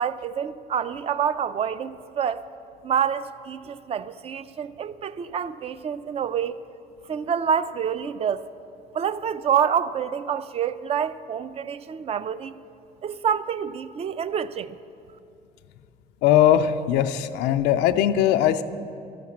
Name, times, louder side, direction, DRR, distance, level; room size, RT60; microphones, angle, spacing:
voice 1, 0.0-2.4 2.8-6.6 7.1-8.5 8.9-12.6 13.0-14.8, right 8 dB, 35° right, 0.4 m, -27 dB
voice 2, 16.2-18.6, left 11 dB, 90° left, 0.4 m, -20 dB
12.5 x 5.9 x 7.2 m
cardioid pair, 110°, 17 cm